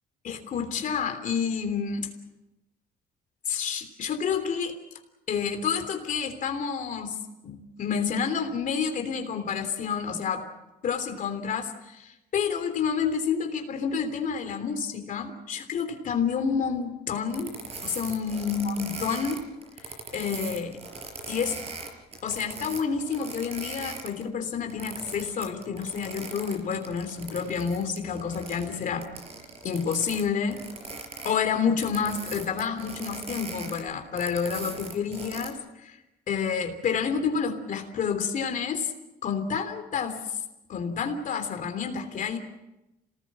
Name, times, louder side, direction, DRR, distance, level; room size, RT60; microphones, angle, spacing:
voice 1, 0.2-2.1 3.5-4.7 5.3-10.5 10.8-17.6 17.8-19.5 19.8-20.8 21.3-21.6 22.2-29.1 29.6-30.6 31.2-36.0 36.3-38.9 39.2-40.4 40.7-42.4, left 6 dB, 50° left, 6 dB, 3.4 m, -29 dB
sound 1, 17.3-24.2 24.6-30.2 30.5-35.5, right 4 dB, 40° right, 5.1 m, -40 dB
27.5 x 19.0 x 7.5 m, 0.94 s
cardioid pair, 110°, 17 cm